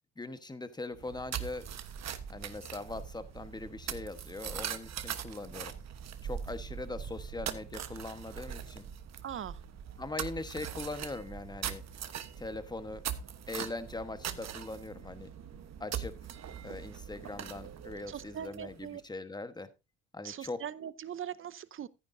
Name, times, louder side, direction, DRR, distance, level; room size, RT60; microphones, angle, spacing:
voice 1, 0.2-1.6 2.3-5.8 6.2-8.9 10.0-11.8 12.4-13.0 13.5-15.3 15.8-16.1 16.6-19.7 20.1-20.6, left 2 dB, 15° left, 1.2 m, -41 dB
sound 1, 0.9-18.9, right 8 dB, 60° right, 1.2 m, -41 dB
voice 2, 9.2-9.6 18.1-19.0 20.2-21.9, right 9 dB, 45° right, 0.7 m, -41 dB
14.5 x 9.6 x 2.7 m
cardioid pair, 90°, 30 cm